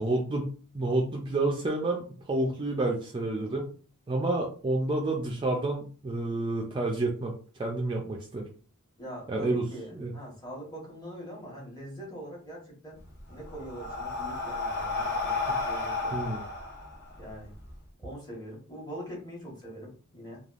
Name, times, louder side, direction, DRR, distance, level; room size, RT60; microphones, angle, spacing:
voice 1, 0.0-3.7 4.1-8.4 9.3-9.7 10.0-10.1 15.5-15.6 16.1-16.4, right 2 dB, 20° right, 0 dB, 0.3 m, -29 dB
voice 2, 9.0-13.0 13.3-16.4 17.2-17.5 18.0-20.4, equal, 20° left, -4 dB, 1.2 m, -43 dB
Breathing, 13.0-17.7, left 3 dB, 50° left, 0.8 m, -32 dB
3.3 x 2.3 x 2.4 m, 0.40 s
head